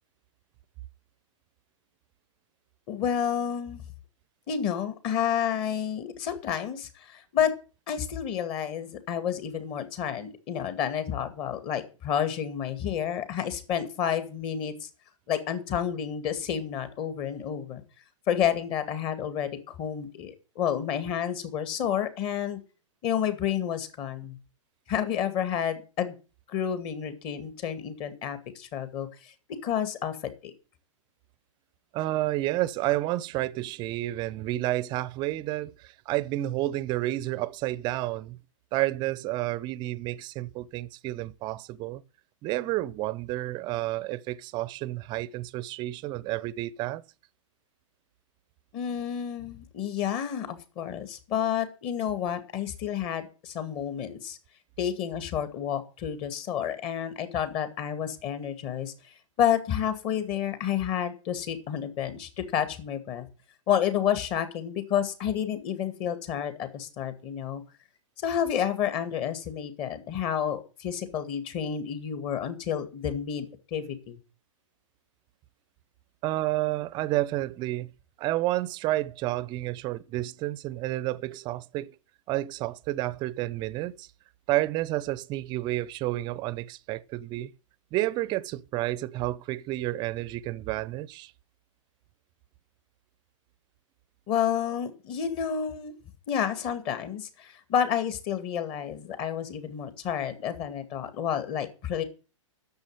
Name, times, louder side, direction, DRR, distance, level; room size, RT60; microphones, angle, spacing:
voice 1, 2.9-3.8 4.5-7.5 7.9-14.9 15.3-17.8 18.3-22.6 23.0-24.4 24.9-26.1 26.5-29.3 29.6-30.5 48.7-54.4 54.8-63.3 63.7-67.6 68.2-74.2 94.3-95.9 96.3-102.0, left 9 dB, 30° left, 2.2 m, -30 dB
voice 2, 31.9-38.4 38.7-42.0 42.4-47.0 76.2-77.9 78.2-81.9 82.3-84.1 84.5-87.5 87.9-91.3, right 16 dB, 25° right, 0.7 m, -30 dB
10.5 x 7.2 x 9.0 m
figure-of-eight pair, 115°, 17 cm